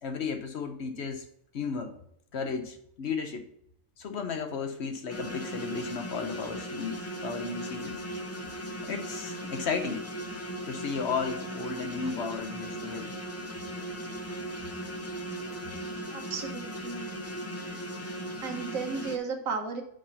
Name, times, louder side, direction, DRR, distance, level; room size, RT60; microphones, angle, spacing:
voice 1, 0.0-1.2 1.5-1.9 2.3-3.5 4.0-7.9 8.9-10.0 10.7-13.1, left 5 dB, 60° left, 6 dB, 1.0 m, -34 dB
sound 1, 5.1-19.2, equal, 15° left, 0.5 m, -38 dB
voice 2, 16.1-17.1 17.6-17.8 18.4-19.8, right 5 dB, 85° right, 4 dB, 1.6 m, -34 dB
5.7 x 5.0 x 5.5 m, 0.69 s
omnidirectional pair, 1.4 m